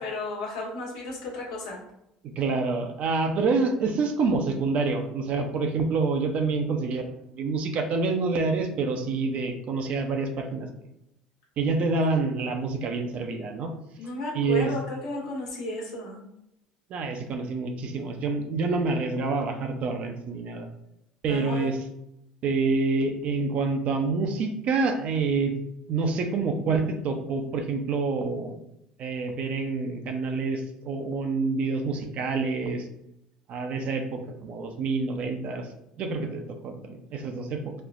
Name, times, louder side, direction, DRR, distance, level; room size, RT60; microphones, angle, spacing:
voice 1, 0.0-1.8 14.0-16.2 21.2-21.7, left 1 dB, 85° left, -3 dB, 1.1 m, -34 dB
voice 2, 2.4-10.7 11.6-13.7 14.3-14.7 16.9-20.7 21.2-21.8 22.4-25.6 25.9-28.6 29.0-32.9 33.5-35.7 36.0-37.7, right 4 dB, 55° right, 5 dB, 0.6 m, -27 dB
4.2 x 2.0 x 2.5 m, 0.80 s
supercardioid pair, 80°, 3 cm